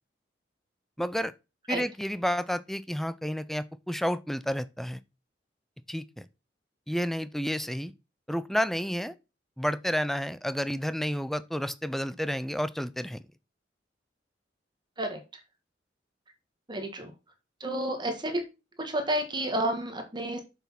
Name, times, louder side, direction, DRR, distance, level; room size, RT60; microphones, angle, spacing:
voice 1, 1.0-1.3 1.7-5.0 5.9-6.3 6.9-7.9 8.3-9.1 9.6-13.2, equal, ahead, 0.5 m, -30 dB
voice 2, 16.7-17.1 17.6-18.4 18.8-20.4, right 1 dB, 25° right, 1.8 m, -30 dB
7.2 x 6.0 x 5.8 m
head